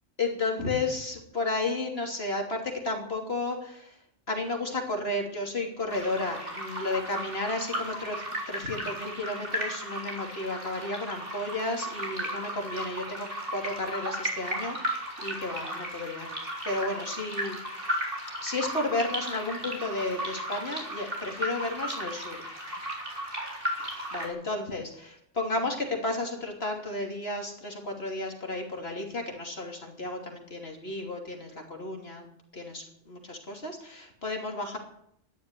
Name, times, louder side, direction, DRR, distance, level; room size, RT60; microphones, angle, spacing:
voice 1, 0.2-4.0 4.3-16.3 16.6-18.1 18.4-22.6 23.8-32.3 32.5-34.8, left 2 dB, 55° left, 2 dB, 3.2 m, -33 dB
sound 1, 5.9-24.3, equal, 45° right, 4.1 m, -35 dB
13.5 x 11.0 x 9.8 m, 0.72 s
omnidirectional pair, 1.2 m